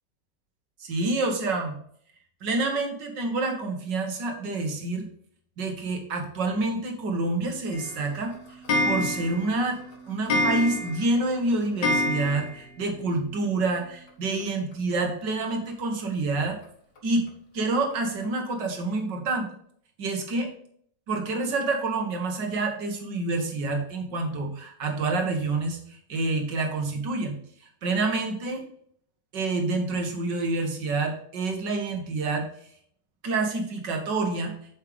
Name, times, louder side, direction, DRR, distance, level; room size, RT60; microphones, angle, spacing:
voice 1, 0.8-1.7 2.4-5.1 5.6-8.3 8.8-9.8 10.1-16.6 17.0-17.2 17.5-19.5 20.0-20.5 21.1-27.3 27.8-28.6 29.3-32.5 33.2-34.5, right 3 dB, 80° right, 3 dB, 2.2 m, -27 dB
Clock, 7.7-12.8 13.1-13.2 13.4-13.5 13.8-13.9 15.0-15.1 15.7-15.8 16.3-16.4 17.0-17.1 17.6-17.7 18.2-18.3, left 1 dB, 70° left, 2.1 m, -28 dB
8.5 x 6.7 x 3.4 m, 0.62 s
omnidirectional pair, 1.9 m